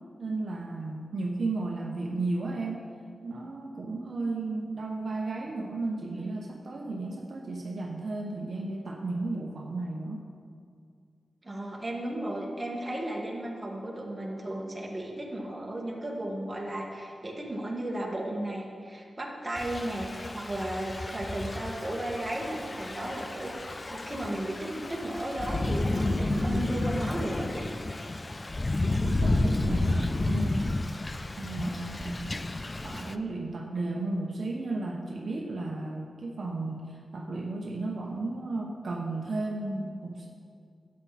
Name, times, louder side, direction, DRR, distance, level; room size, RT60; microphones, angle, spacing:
voice 1, 0.2-2.8 3.2-10.2 29.0-30.7 31.4-32.2 32.8-40.3, right 2 dB, 60° right, -1 dB, 1.0 m, -34 dB
voice 2, 11.4-20.1 20.3-27.7, right 1 dB, 20° right, -2 dB, 1.8 m, -34 dB
Thunder / Rain, 19.6-33.2, left 2 dB, 25° left, 0.4 m, -31 dB
12.5 x 8.6 x 4.2 m, 2.2 s
wide cardioid pair, 105°, 0 cm